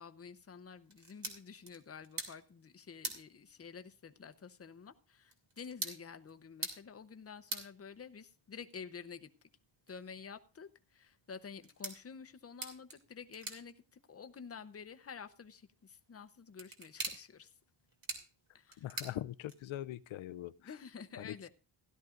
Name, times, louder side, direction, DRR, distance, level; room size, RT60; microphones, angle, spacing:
voice 1, 0.0-9.3 9.9-17.5 18.5-18.9 20.6-21.5, left 6 dB, 30° left, 0.7 m, -50 dB
sound 1, 0.8-19.9, right 3 dB, 45° right, 2.7 m, -48 dB
voice 2, 18.8-20.7 21.2-21.5, left 13 dB, 80° left, 0.5 m, -42 dB
16.5 x 12.0 x 2.5 m
wide cardioid pair, 125°, 46 cm